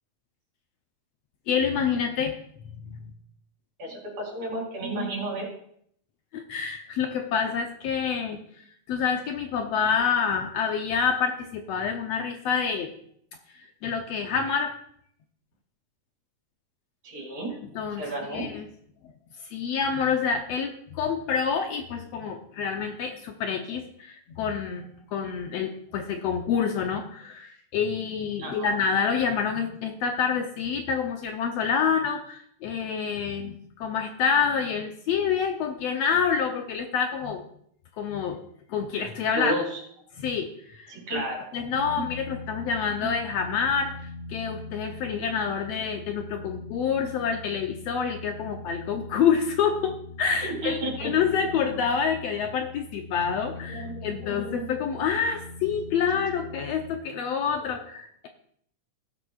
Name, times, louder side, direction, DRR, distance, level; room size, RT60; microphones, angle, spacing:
voice 1, 1.5-2.4 2.8-3.0 6.3-8.4 8.9-12.9 13.8-14.7 17.6-18.7 19.4-37.4 38.0-38.4 38.7-39.5 40.2-41.2 41.5-43.9 44.3-58.3, left 6 dB, 70° left, 4 dB, 1.7 m, -27 dB
voice 2, 3.8-5.5 17.0-17.5 18.0-18.5 28.4-28.8 39.3-39.8 40.9-41.5 41.9-42.1 43.0-43.1 50.4-51.1 53.7-54.8 57.6-57.8, right 1 dB, 75° right, -2 dB, 5.2 m, -32 dB
sound 1, 41.8-57.0, left 2 dB, 30° right, 2.5 m, -42 dB
18.0 x 7.9 x 2.4 m, 0.67 s
omnidirectional pair, 3.4 m